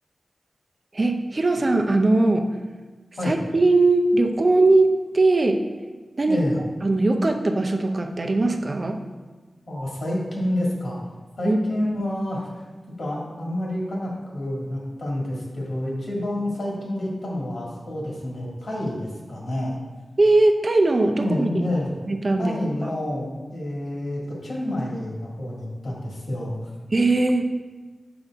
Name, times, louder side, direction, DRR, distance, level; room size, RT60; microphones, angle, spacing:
voice 1, 0.9-2.5 3.2-5.6 6.2-6.4 6.8-9.0 11.4-11.6 20.2-21.5 22.1-22.6 22.8-22.9 26.9-27.5, right 2 dB, 40° right, 4 dB, 0.6 m, -20 dB
voice 2, 9.7-11.0 11.4-12.5 13.0-19.8 21.2-21.9 22.4-26.5, left 1 dB, 70° left, -4 dB, 1.9 m, -28 dB
6.9 x 5.4 x 3.5 m, 1.3 s
wide cardioid pair, 95°, 0 cm